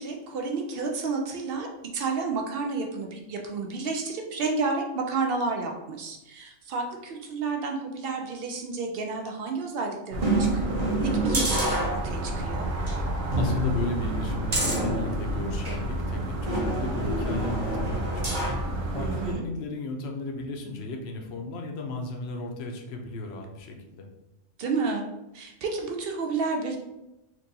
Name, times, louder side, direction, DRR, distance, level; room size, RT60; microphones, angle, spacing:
voice 1, 0.0-1.7 1.9-12.7 18.9-19.4 24.6-25.0 25.3-26.8, right 4 dB, 65° right, 2 dB, 0.6 m, -31 dB
sound 1, 10.1-19.3, right 1 dB, 80° right, 1.1 m, -31 dB
sound 2, 10.2-12.4 12.8-12.9 13.3-15.8 16.5-18.7 19.1-19.2, right 1 dB, 35° right, 0.9 m, -28 dB
voice 2, 13.4-18.5 18.9-24.1, left 2 dB, 60° left, 2 dB, 0.8 m, -35 dB
4.4 x 2.6 x 2.7 m, 0.96 s
omnidirectional pair, 1.4 m